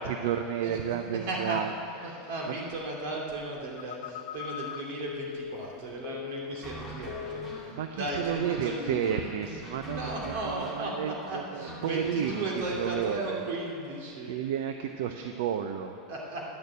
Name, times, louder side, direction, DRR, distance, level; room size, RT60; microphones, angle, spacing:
voice 1, 0.0-1.7 2.0-2.2 7.7-13.4 14.3-16.0, right 9 dB, 75° right, 7 dB, 0.5 m, -32 dB
voice 2, 1.3-1.6 2.0-9.1 9.5-9.6 9.9-14.4 16.1-16.6, right 2 dB, 60° right, -2 dB, 2.6 m, -35 dB
Telephone, 3.8-6.8 7.1-7.7 8.1-8.4, left 9 dB, 75° left, 0.4 m, -40 dB
sound 1, 6.6-13.0, equal, 15° right, 1.9 m, -44 dB
10.5 x 6.6 x 8.1 m, 2.6 s
supercardioid pair, 175°, 0 cm